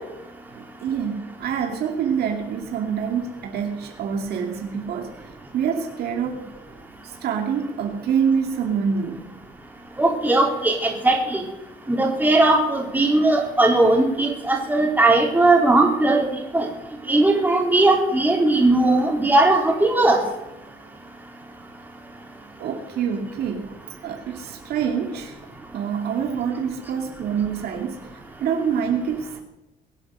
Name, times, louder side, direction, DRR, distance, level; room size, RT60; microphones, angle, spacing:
voice 1, 0.5-5.1 5.5-6.4 7.0-9.3 22.6-23.7 24.0-25.4 25.7-28.1 28.4-29.4, right 7 dB, 70° right, 3 dB, 2.4 m, -26 dB
voice 2, 10.0-11.4 11.9-16.3 16.5-16.7 17.1-20.2, right 2 dB, 10° right, 0 dB, 4.1 m, -18 dB
22.5 x 7.9 x 6.6 m, 1.0 s
cardioid pair, 110°, 17 cm